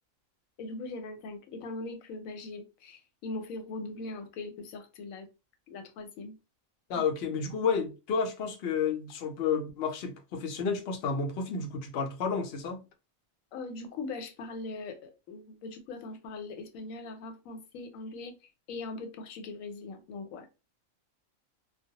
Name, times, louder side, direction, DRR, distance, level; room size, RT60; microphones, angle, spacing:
voice 1, 0.6-5.3 5.7-6.4 6.9-7.0 13.5-18.4 18.7-20.6, left 3 dB, 85° left, 1.0 m, -40 dB
voice 2, 6.9-12.8, left 5 dB, 65° left, 0.7 m, -31 dB
2.2 x 2.0 x 2.7 m
omnidirectional pair, 1.4 m